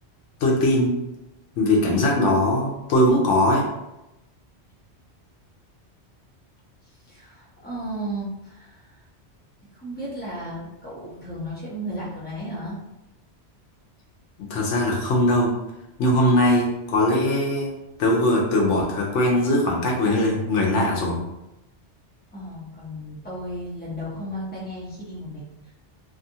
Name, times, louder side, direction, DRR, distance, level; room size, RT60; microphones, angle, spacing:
voice 1, 0.4-0.9 1.6-3.6 14.4-15.5 16.0-17.7 18.0-21.2, left 1 dB, 80° left, -2 dB, 1.0 m, -20 dB
voice 2, 6.8-9.1 9.7-12.8 22.3-25.7, equal, 10° left, -8 dB, 0.8 m, -34 dB
2.6 x 2.4 x 2.7 m, 0.94 s
omnidirectional pair, 1.2 m